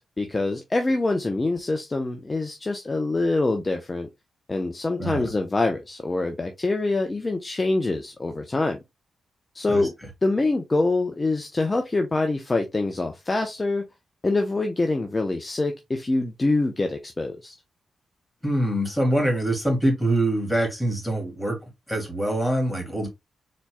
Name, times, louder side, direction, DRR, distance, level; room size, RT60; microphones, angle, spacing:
voice 1, 0.2-4.1 4.5-8.8 9.5-9.9 10.2-13.9 14.2-17.5, left 2 dB, 30° left, 0.7 m, -25 dB
voice 2, 5.0-5.3 9.7-9.9 18.4-21.6 21.9-23.1, right 1 dB, 5° left, 2.6 m, -24 dB
4.2 x 4.2 x 2.2 m
supercardioid pair, 55°, 0 cm